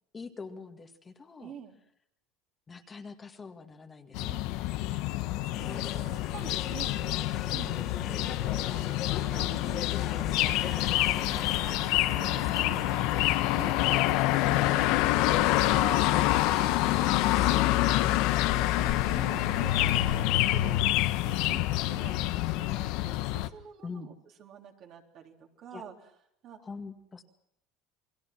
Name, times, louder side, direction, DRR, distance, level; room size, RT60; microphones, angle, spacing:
voice 1, 0.1-1.5 2.7-5.2 12.5-13.4 17.3-18.0 23.8-24.2 25.7-25.8 26.6-27.2, left 4 dB, 20° left, 5 dB, 2.0 m, -45 dB
voice 2, 1.4-1.8 4.1-4.4 4.9-5.0 5.4-13.3 13.5-17.7 18.5-20.8 21.2-24.1 24.4-25.9 26.4-26.6, right 8 dB, 50° right, 2 dB, 3.5 m, -47 dB
sound 1, 4.1-23.5, left 16 dB, 70° left, 1.1 m, -27 dB
sound 2, 5.5-11.8, left 9 dB, 50° left, 2.7 m, -39 dB
sound 3, 10.3-20.2, right 4 dB, 30° right, 2.7 m, -45 dB
29.0 x 21.0 x 6.1 m, 0.75 s
supercardioid pair, 130°, 0 cm